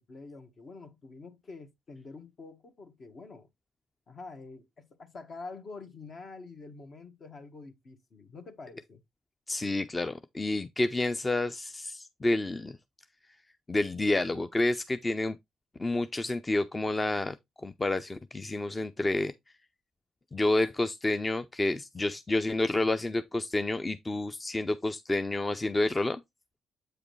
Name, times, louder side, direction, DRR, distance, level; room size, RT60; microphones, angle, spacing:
voice 1, 0.0-3.5 4.1-9.0, left 3 dB, 55° left, 1.7 m, -46 dB
voice 2, 9.5-12.7 13.7-15.4 15.8-17.3 17.6-19.3 20.3-26.2, left 2 dB, 25° left, 0.6 m, -29 dB
8.1 x 4.9 x 3.2 m
supercardioid pair, 65°, 0 cm